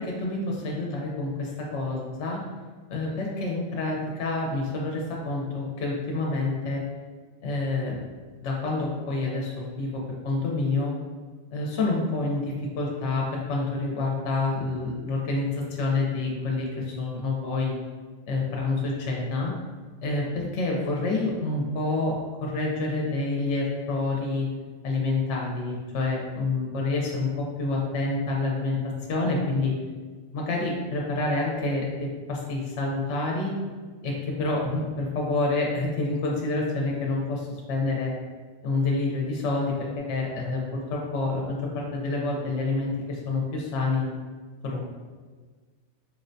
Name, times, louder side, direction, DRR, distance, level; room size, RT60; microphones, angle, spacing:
voice 1, 0.0-2.4 2.9-6.8 7.4-8.0 8.4-10.9 11.5-17.7 18.3-19.5 20.0-24.5 24.8-28.8 29.1-29.7 30.3-33.5 34.0-38.1 38.6-44.1 44.6-44.8, left 3 dB, 75° left, -2 dB, 0.9 m, -28 dB
4.6 x 2.1 x 2.5 m, 1.5 s
omnidirectional pair, 1.2 m